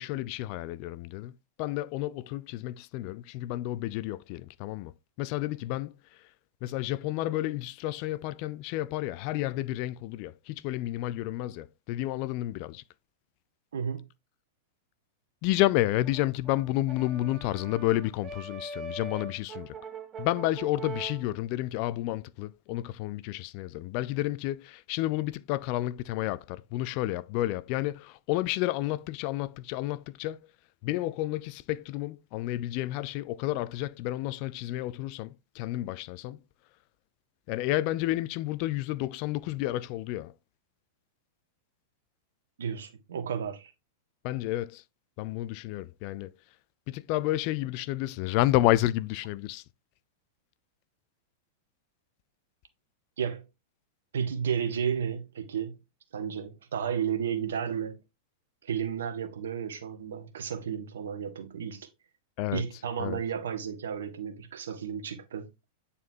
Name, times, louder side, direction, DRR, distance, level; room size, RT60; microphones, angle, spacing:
voice 1, 0.0-1.3 1.6-5.9 6.6-12.8 15.4-19.7 20.2-30.4 30.8-36.4 37.5-40.3 44.2-44.8 45.2-46.3 46.9-49.6 62.4-62.6 63.0-63.2, left 16 dB, 45° left, 0.3 m, -30 dB
voice 2, 13.7-14.0 42.6-43.7 53.2-53.4 54.1-55.8 56.1-58.0 58.6-61.9 62.5-65.5, right 7 dB, 70° right, 1.2 m, -32 dB
Brass instrument, 15.8-21.3, right 3 dB, 25° right, 0.8 m, -42 dB
9.2 x 4.1 x 2.7 m
figure-of-eight pair, 95°, 0 cm